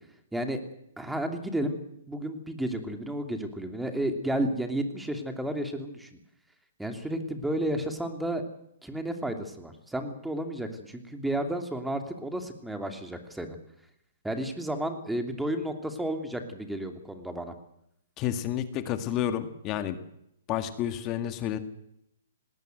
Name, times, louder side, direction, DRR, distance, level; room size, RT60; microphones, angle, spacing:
voice 1, 1.0-1.8 2.1-6.2 6.8-8.4 8.8-13.6 14.2-17.5, right 1 dB, 5° right, 6 dB, 2.8 m, -32 dB
voice 2, 18.2-20.0 20.5-21.6, left 10 dB, 30° left, 10 dB, 1.9 m, -30 dB
19.5 x 18.0 x 7.9 m, 0.77 s
hypercardioid pair, 145°, 0 cm